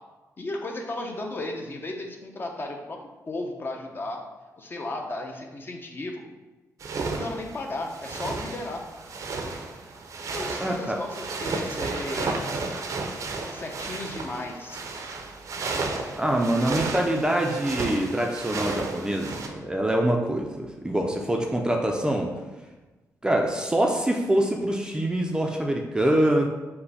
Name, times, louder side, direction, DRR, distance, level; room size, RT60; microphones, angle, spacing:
voice 1, 0.4-3.0 3.3-4.2 4.6-6.2 7.1-8.8 10.3-12.4 13.5-14.8, left 2 dB, 35° left, 2 dB, 0.6 m, -34 dB
sound 1, 6.8-19.5, right 3 dB, 60° right, 0.5 m, -33 dB
voice 2, 10.6-11.0 16.1-22.3 23.2-26.5, right 1 dB, 15° right, 1 dB, 0.4 m, -25 dB
5.5 x 2.1 x 4.0 m, 1.2 s
cardioid pair, 110°, 6 cm